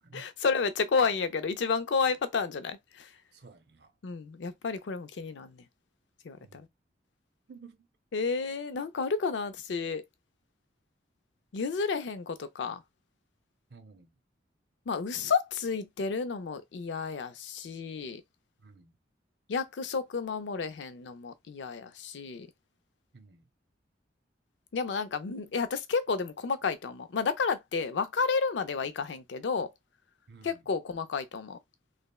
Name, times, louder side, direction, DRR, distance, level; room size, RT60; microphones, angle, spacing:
voice 1, 0.1-3.1 4.0-5.6 6.2-6.7 8.1-10.0 11.5-12.8 14.9-18.2 19.5-22.5 24.7-29.7 30.4-31.6, left 5 dB, 80° left, 0.4 m, -31 dB
voice 2, 3.3-4.0 6.4-6.6 7.5-7.9 13.7-14.1 18.6-19.0 23.1-23.5 30.3-30.7, right 4 dB, 65° right, 0.6 m, -53 dB
3.3 x 2.1 x 2.3 m
head